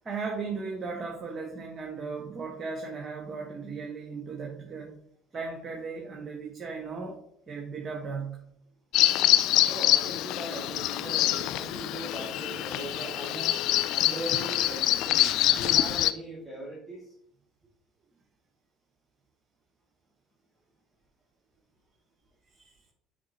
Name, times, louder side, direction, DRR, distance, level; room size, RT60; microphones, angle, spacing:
voice 1, 0.0-5.0 5.3-8.5 22.5-22.8, right 4 dB, 35° right, 1 dB, 1.4 m, -37 dB
Bird vocalization bird call bird song, 8.9-16.1, left 14 dB, 60° left, 0.4 m, -25 dB
voice 2, 9.7-13.5 13.9-17.1, right 2 dB, 10° right, -6 dB, 2.5 m, -39 dB
9.3 x 5.0 x 3.0 m, 0.72 s
figure-of-eight pair, 60°, 0 cm